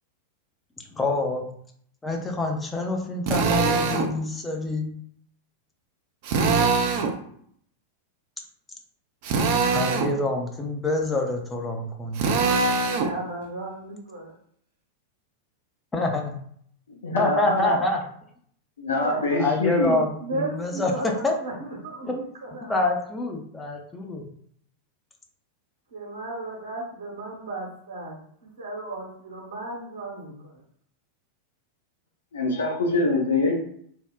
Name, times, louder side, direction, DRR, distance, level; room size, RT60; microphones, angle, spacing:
voice 1, 0.8-1.5 2.0-5.0 9.7-12.3 15.9-16.4 17.2-18.0 19.4-20.9 21.2-21.3 22.1-22.2 22.7-24.3, left 2 dB, 15° left, 2 dB, 0.5 m, -26 dB
Drill, 3.3-4.1 6.2-7.2 9.2-10.1 12.2-13.1, right 4 dB, 45° right, 0.4 m, -22 dB
voice 2, 12.9-14.3 18.9-19.4 20.2-22.7 25.9-28.2 28.6-30.6, right 2 dB, 70° right, -2 dB, 1.0 m, -35 dB
voice 3, 17.0-17.8 18.8-20.0 32.3-33.6, left 2 dB, 70° left, 0 dB, 0.7 m, -24 dB
3.5 x 2.0 x 2.3 m, 0.64 s
figure-of-eight pair, 90°, 0 cm